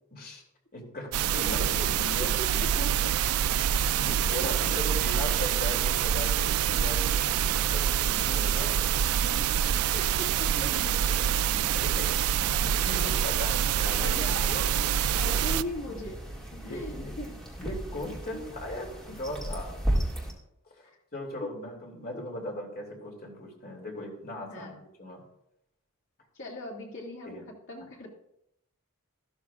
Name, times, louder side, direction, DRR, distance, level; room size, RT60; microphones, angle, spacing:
voice 1, 0.1-0.4 0.7-2.9 4.0-8.7 9.7-9.8 10.6-11.1 11.5-12.1 12.6-14.2 15.1-15.3 16.6-19.8 20.7-24.7 25.0-25.2 27.3-27.4, left 1 dB, 45° left, 0 dB, 2.7 m, -38 dB
sound 1, 1.1-15.6, right 9 dB, 70° right, 0.3 m, -26 dB
voice 2, 2.2-2.9 3.3-4.3 9.9-11.4 12.1-12.2 14.0-14.7 15.2-16.2 16.5-17.3 20.8-21.0 21.4-21.5 22.1-22.2 24.5-24.8 26.3-27.4 27.7-28.1, left 1 dB, 60° left, -2 dB, 2.3 m, -40 dB
sound 2, 12.2-20.3, right 1 dB, 5° left, 2.0 m, -36 dB
13.5 x 12.5 x 2.4 m, 0.80 s
head